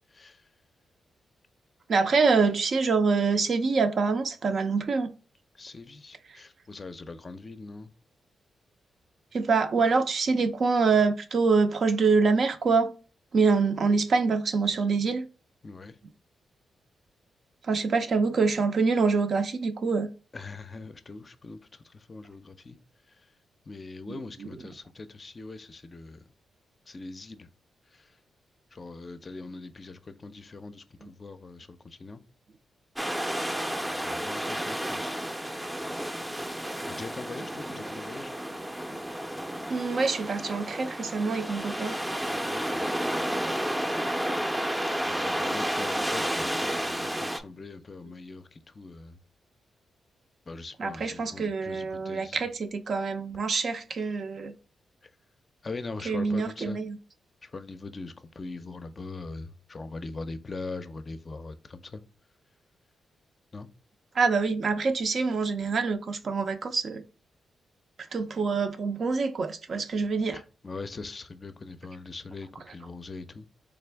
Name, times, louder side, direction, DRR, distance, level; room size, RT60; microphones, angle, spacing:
voice 1, 0.1-0.4 5.6-7.9 15.6-16.0 20.3-22.8 23.7-26.2 26.9-27.5 27.9-28.1 28.7-32.2 33.9-35.2 36.6-38.4 42.3-43.2 45.1-49.2 50.5-52.4 55.6-56.8 57.4-62.0 63.5-63.7 70.3-73.5, left 3 dB, 40° left, 0.4 m, -42 dB
voice 2, 1.9-5.1 6.3-6.4 9.3-12.9 13.3-15.3 17.6-20.1 24.1-24.5 31.0-31.1 39.7-42.0 45.9-46.0 50.8-54.6 56.1-57.0 64.1-67.0 68.1-70.4, right 4 dB, 60° right, 0.5 m, -25 dB
sound 1, 33.0-47.4, equal, 10° right, 0.5 m, -31 dB
3.5 x 2.4 x 3.4 m
cardioid pair, 60°, 0 cm